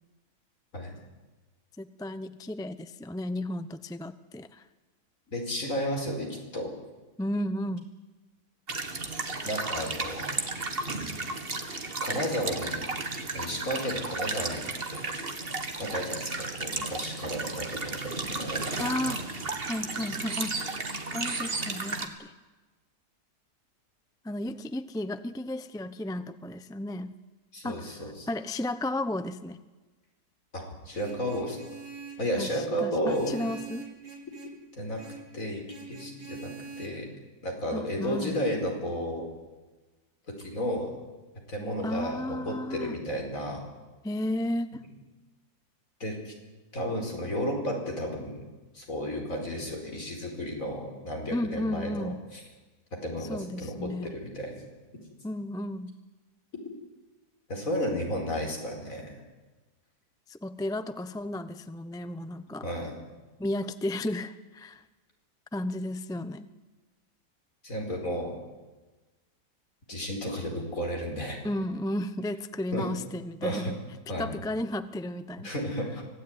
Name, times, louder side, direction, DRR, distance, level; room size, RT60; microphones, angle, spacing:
voice 1, 1.8-4.6 7.2-7.8 18.8-19.3 19.7-20.6 21.1-22.3 24.2-27.1 27.6-29.6 32.4-33.9 37.7-38.4 41.8-42.9 44.0-44.8 51.3-52.2 53.2-54.1 55.2-55.9 60.3-62.7 63.4-64.8 65.5-66.5 71.4-73.8 74.2-75.5, left 1 dB, 5° left, 12 dB, 0.4 m, -33 dB
voice 2, 5.3-6.7 9.4-10.4 12.0-12.9 13.3-14.7 14.9-15.1 15.5-19.1 27.5-28.3 30.5-31.6 32.2-33.4 34.7-35.0 35.3-35.6 35.9-37.1 37.4-39.3 40.3-40.9 41.5-43.6 46.0-46.3 46.7-48.4 48.7-52.4 53.0-54.5 57.5-59.1 62.6-62.9 67.6-68.3 69.9-71.4 72.7-72.9 73.4-73.7 74.1-74.3 75.4-76.0, equal, 55° left, 1 dB, 5.2 m, -33 dB
sound 1, 8.7-22.1, right 3 dB, 35° right, 1.9 m, -34 dB
Vehicle horn car horn honking, 30.9-32.3 33.1-34.6 35.0-35.3 35.7-36.9, right 4 dB, 80° right, 3.3 m, -44 dB
25.0 x 16.0 x 9.6 m, 1.2 s
omnidirectional pair, 1.7 m